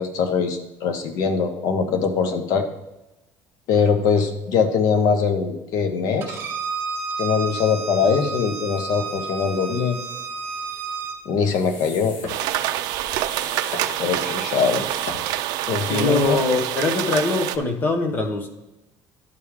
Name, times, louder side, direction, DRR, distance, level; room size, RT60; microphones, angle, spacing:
voice 1, 0.0-2.6 3.7-6.4 7.2-10.0 11.2-12.2 14.0-14.8 15.7-16.4, left 5 dB, 55° left, 7 dB, 1.1 m, -22 dB
Bowed string instrument, 6.2-11.2, right 4 dB, 30° right, 1.2 m, -31 dB
sound 1, 11.4-16.8, left 3 dB, 75° left, 1.7 m, -39 dB
sound 2, 12.3-17.6, right 13 dB, 65° right, 0.5 m, -26 dB
voice 2, 15.9-18.5, left 3 dB, 25° left, 5 dB, 1.0 m, -22 dB
11.5 x 4.9 x 3.6 m, 0.99 s
cardioid pair, 175°, 7 cm